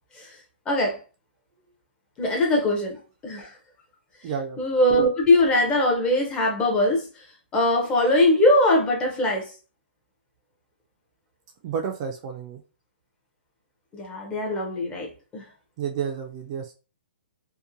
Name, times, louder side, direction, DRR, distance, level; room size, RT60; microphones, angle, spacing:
voice 1, 0.7-1.0 2.2-3.5 4.6-7.2 7.5-9.5 13.9-15.4, left 1 dB, 15° left, 0.6 m, -21 dB
voice 2, 4.2-4.6 11.6-12.6 15.8-16.7, right 7 dB, 35° right, 0.4 m, -30 dB
2.8 x 2.1 x 2.5 m
hypercardioid pair, 155°, 6 cm